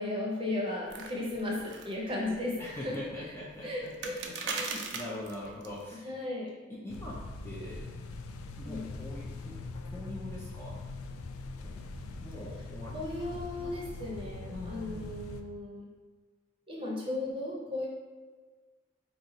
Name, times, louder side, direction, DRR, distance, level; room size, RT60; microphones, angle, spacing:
voice 1, 0.0-2.9 3.6-4.2 4.5-4.7 6.0-6.5 8.6-8.9 12.9-15.9 16.7-17.9, left 2 dB, 25° right, -3 dB, 0.7 m, -35 dB
sound 1, 0.9-5.9, right 4 dB, 55° right, 0.4 m, -41 dB
voice 2, 2.6-6.2 6.7-7.9 8.6-9.6 9.8-10.8 11.6-14.0 14.3-15.1, left 1 dB, 10° left, -6 dB, 0.5 m, -43 dB
sound 2, 6.9-15.4, left 3 dB, 90° left, 0.3 m, -42 dB
3.9 x 2.4 x 3.9 m, 1.4 s
head